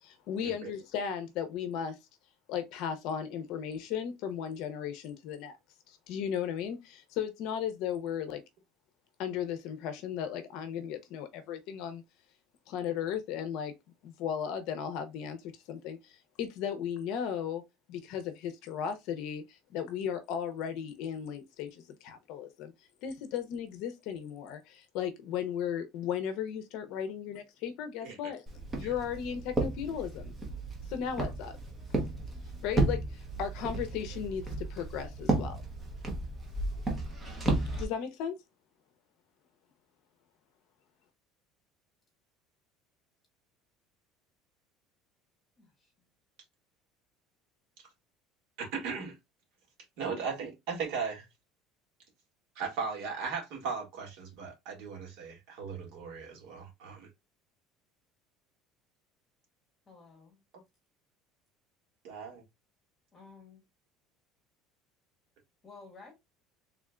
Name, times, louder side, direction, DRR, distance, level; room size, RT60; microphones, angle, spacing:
voice 1, 0.0-2.0 2.5-5.5 5.9-8.4 9.2-12.0 12.7-13.7 14.0-17.6 17.9-22.7 23.0-28.4 28.8-30.3 30.9-31.6 32.6-35.6 37.7-38.3, left 8 dB, 55° left, 0.6 m, -36 dB
Walk footsteps, 28.5-37.8, right 2 dB, 15° right, 1.0 m, -33 dB
voice 2, 45.6-46.1 59.9-60.4 63.1-63.6 65.6-66.1, left 4 dB, 20° left, 1.9 m, -53 dB
voice 3, 48.6-49.2 50.0-51.3 52.6-57.1 62.0-62.4, right 5 dB, 60° right, 2.1 m, -37 dB
3.6 x 3.4 x 2.4 m
cardioid pair, 175°, 0 cm